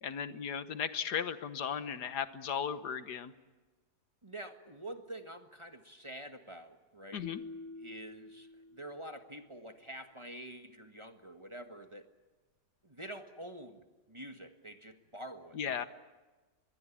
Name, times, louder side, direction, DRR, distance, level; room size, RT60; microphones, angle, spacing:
voice 1, 0.0-3.3 7.1-7.4 15.5-15.9, left 7 dB, 75° left, 12 dB, 1.7 m, -36 dB
voice 2, 4.2-7.3 7.8-12.0 12.8-15.9, right 1 dB, 20° right, 6 dB, 1.6 m, -47 dB
sound 1, 7.2-9.4, left 4 dB, 45° left, 1.6 m, -47 dB
26.0 x 21.5 x 8.7 m, 1.2 s
omnidirectional pair, 1.8 m